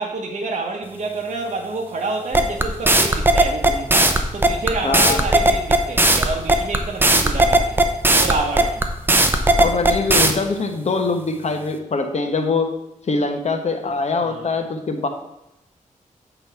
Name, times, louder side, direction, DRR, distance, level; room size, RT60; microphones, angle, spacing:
voice 1, 0.0-7.8 8.1-8.8 14.2-14.6, right 3 dB, 60° right, 0 dB, 1.0 m, -28 dB
sound 1, 2.3-10.3, right 2 dB, 15° right, 0.7 m, -15 dB
voice 2, 4.8-5.2 9.6-12.7 13.1-15.1, left 3 dB, 55° left, 5 dB, 1.1 m, -23 dB
8.0 x 4.0 x 5.7 m, 0.89 s
wide cardioid pair, 95°, 14 cm